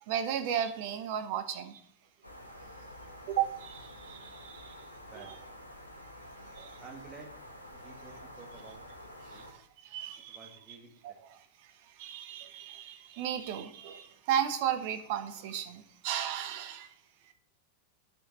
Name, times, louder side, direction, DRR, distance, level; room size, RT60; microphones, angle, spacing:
voice 1, 0.1-1.8 3.3-4.8 5.2-5.4 6.5-6.8 9.2-10.4 11.0-11.4 12.0-16.9, right 9 dB, 50° right, 9 dB, 1.0 m, -35 dB
sound 1, 2.2-9.5, equal, 85° left, 1.2 m, -49 dB
voice 2, 5.0-5.4 6.8-7.3 7.7-8.8 9.2-9.4 10.3-11.2, right 4 dB, 25° right, 1 dB, 2.3 m, -51 dB
10.5 x 6.0 x 4.2 m, 0.65 s
figure-of-eight pair, 90°, 0 cm